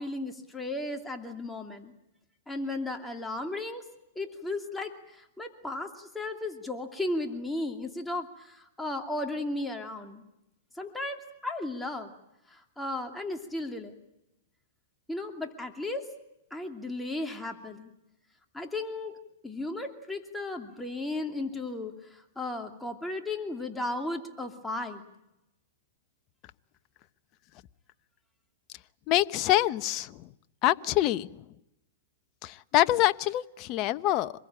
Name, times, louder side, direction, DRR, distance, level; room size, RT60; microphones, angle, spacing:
voice 1, 0.0-1.9 2.5-3.8 4.1-10.2 10.7-12.1 12.5-14.0 15.1-16.0 16.5-17.9 18.5-19.2 19.4-25.0, left 2 dB, 5° left, 3 dB, 2.7 m, -35 dB
voice 2, 29.1-30.1 30.6-31.4 32.4-34.3, left 14 dB, 40° left, 12 dB, 1.0 m, -25 dB
27.0 x 21.5 x 8.9 m, 0.88 s
hypercardioid pair, 130°, 0 cm